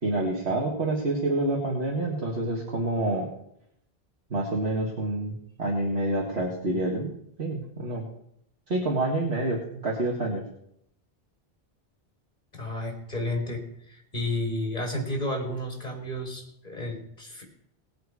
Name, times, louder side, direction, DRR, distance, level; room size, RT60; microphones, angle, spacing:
voice 1, 0.0-3.3 4.3-7.1 7.4-8.0 8.7-10.4, right 2 dB, 85° right, -3 dB, 2.1 m, -27 dB
voice 2, 12.5-17.4, left 1 dB, 40° left, 2 dB, 3.3 m, -32 dB
19.5 x 7.8 x 4.8 m, 0.75 s
omnidirectional pair, 1.1 m